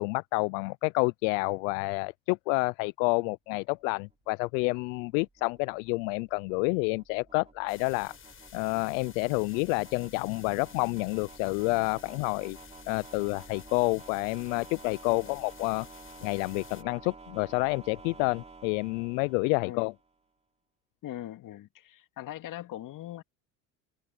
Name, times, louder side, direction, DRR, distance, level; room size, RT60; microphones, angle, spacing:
voice 1, 0.0-8.1 8.5-12.6 12.9-15.9 16.2-19.9, left 30 dB, 75° left, 0.5 m, -29 dB
sound 1, 4.0-20.1, right 3 dB, 15° right, 4.3 m, -51 dB
sound 2, 7.7-16.8, left 7 dB, 30° left, 7.4 m, -52 dB
voice 2, 19.6-19.9 21.0-23.2, left 13 dB, 50° left, 2.5 m, -41 dB
supercardioid pair, 100°, 39 cm